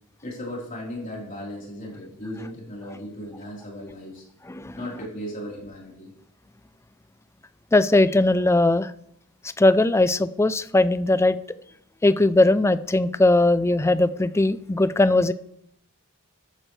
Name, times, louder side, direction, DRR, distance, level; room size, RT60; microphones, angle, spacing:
voice 1, 0.2-4.2 4.8-6.1, equal, 40° left, -4 dB, 4.0 m, -36 dB
voice 2, 7.7-8.9 9.6-11.4 12.0-15.3, left 2 dB, 10° left, 14 dB, 0.4 m, -19 dB
14.0 x 10.5 x 3.3 m, 0.75 s
head